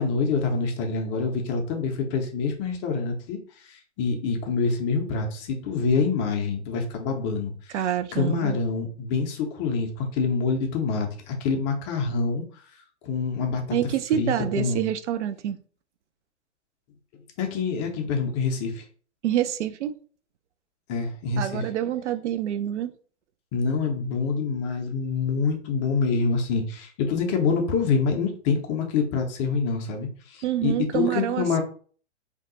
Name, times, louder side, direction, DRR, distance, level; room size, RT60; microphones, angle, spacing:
voice 1, 0.0-7.8 8.1-12.4 13.0-13.8 14.1-14.8 17.4-18.9 20.9-21.6 23.5-31.6, left 5 dB, 25° left, 0.5 m, -26 dB
voice 2, 7.7-8.6 13.7-15.6 19.2-19.9 21.4-22.9 30.4-31.6, right 11 dB, 70° right, 0.5 m, -27 dB
2.7 x 2.3 x 3.8 m
hypercardioid pair, 130°, 36 cm